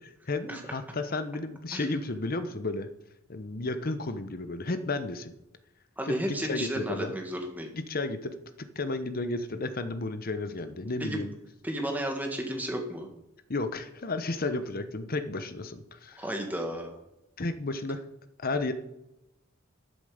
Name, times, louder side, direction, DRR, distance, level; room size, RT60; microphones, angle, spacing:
voice 1, 0.3-2.9 3.3-5.3 6.1-7.1 7.7-8.4 8.8-11.3 13.5-16.2 17.4-18.0 18.4-18.7, left 2 dB, 45° left, 10 dB, 0.9 m, -32 dB
voice 2, 6.0-7.7 11.0-11.2 11.6-13.1 16.2-17.0, right 1 dB, 10° right, 2 dB, 1.8 m, -33 dB
13.5 x 7.7 x 5.1 m, 0.88 s
head